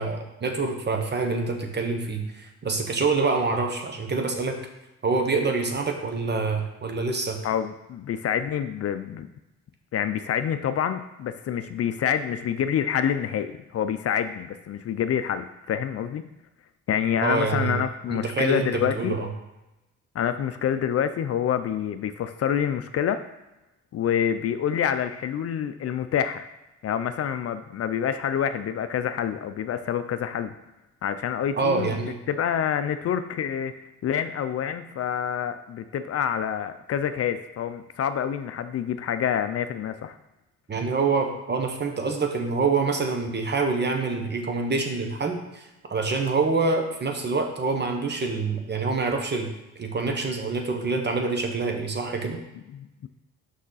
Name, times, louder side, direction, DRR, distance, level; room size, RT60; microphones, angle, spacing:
voice 1, 0.0-4.6 5.0-7.4 17.2-17.8 18.1-19.3 31.6-32.2 40.7-49.5 49.8-52.4, right 4 dB, 35° right, 4 dB, 1.2 m, -26 dB
voice 2, 7.4-9.3 9.9-16.2 16.9-19.1 20.1-23.2 23.9-26.5 26.8-30.5 31.0-33.7 34.0-40.2 52.7-53.1, left 8 dB, 50° left, 10 dB, 0.5 m, -27 dB
6.2 x 5.6 x 4.1 m, 0.98 s
cardioid pair, 90°, 30 cm